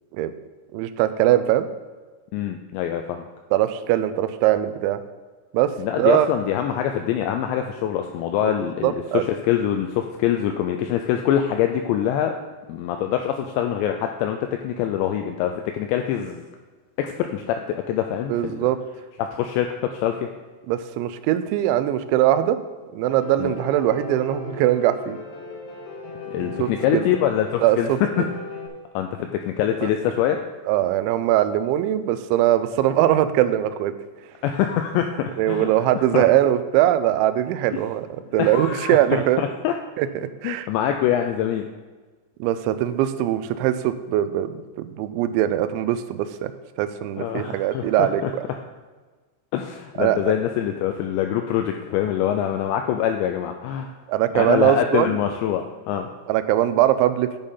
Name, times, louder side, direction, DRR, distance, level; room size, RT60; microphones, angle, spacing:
voice 1, 0.7-1.7 3.5-5.0 5.5-5.7 6.0-6.3 8.4-8.5 8.8-9.2 18.3-18.8 20.7-22.6 22.9-25.2 26.4-27.1 27.6-28.3 29.8-29.9 30.7-33.9 35.4-38.1 38.3-39.4 40.0-40.1 40.4-40.7 42.4-46.5 46.8-48.4 50.0-50.2 54.1-55.2 56.3-57.3, right 13 dB, 85° right, 12 dB, 2.8 m, -21 dB
voice 2, 2.3-3.3 5.8-12.3 12.7-16.5 17.0-18.6 19.2-20.2 23.4-23.5 26.3-28.2 29.0-30.4 34.4-35.7 36.1-36.2 38.4-39.7 40.4-41.7 47.2-48.3 49.5-53.9 54.3-56.1, left 10 dB, 85° left, 5 dB, 2.6 m, -24 dB
Piano, 23.0-28.7, left 4 dB, 70° left, 3.4 m, -37 dB
10.5 x 5.3 x 5.5 m, 1.3 s
omnidirectional pair, 5.5 m